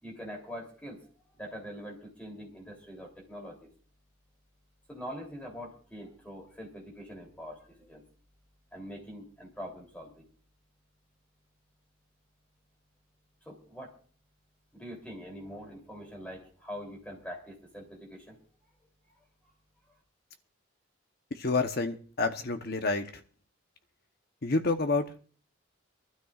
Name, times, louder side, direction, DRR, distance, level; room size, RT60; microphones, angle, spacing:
voice 1, 0.0-1.0 1.3-3.7 4.9-8.0 8.7-10.3 13.4-13.9 14.7-18.4, equal, 5° left, 3.2 m, -44 dB
voice 2, 21.3-23.1 24.4-25.2, left 3 dB, 50° left, 1.0 m, -29 dB
25.0 x 12.5 x 2.5 m
head